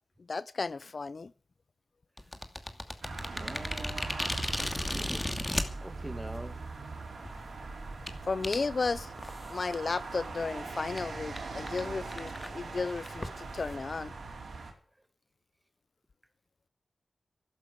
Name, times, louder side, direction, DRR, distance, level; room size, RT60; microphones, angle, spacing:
voice 1, 0.3-1.3 8.3-9.1 9.5-14.1, left 4 dB, 60° left, 0.6 m, -34 dB
sound 1, 2.2-5.7 6.5-6.6 7.1-7.3 8.1-8.2 8.4-8.6 9.2-9.6 10.0-10.1 10.4-10.5 11.0-11.1 11.3-11.4 11.7-11.8 12.1-13.8, left 1 dB, 20° left, 2.6 m, -35 dB
sound 2, 3.0-14.7, right 3 dB, 75° right, 4.4 m, -41 dB
voice 2, 3.3-5.3 5.8-6.6, right 1 dB, 15° right, 2.4 m, -44 dB
13.0 x 11.5 x 8.6 m
cardioid pair, 40°, 0 cm